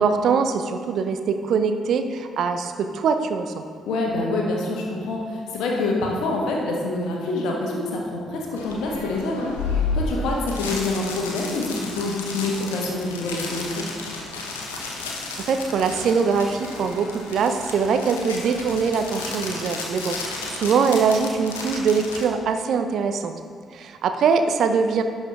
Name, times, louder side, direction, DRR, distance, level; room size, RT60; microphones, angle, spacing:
voice 1, 0.0-3.6 15.5-23.3 23.7-25.0, right 5 dB, 60° right, 7 dB, 0.5 m, -22 dB
voice 2, 3.9-9.5 9.9-13.9, left 2 dB, 65° left, -1 dB, 1.3 m, -26 dB
sound 1, 8.6-22.3, left 3 dB, 80° left, 0.7 m, -32 dB
11.0 x 5.7 x 3.5 m, 2.2 s
figure-of-eight pair, 40°, 0 cm